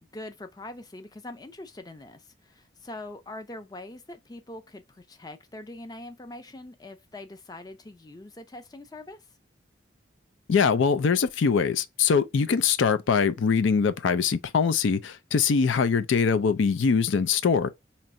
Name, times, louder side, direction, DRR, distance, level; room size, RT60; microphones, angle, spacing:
voice 1, 0.1-9.2, left 2 dB, 20° left, 0.5 m, -43 dB
voice 2, 10.5-17.7, left 6 dB, 80° left, 0.4 m, -23 dB
4.4 x 2.9 x 2.6 m
head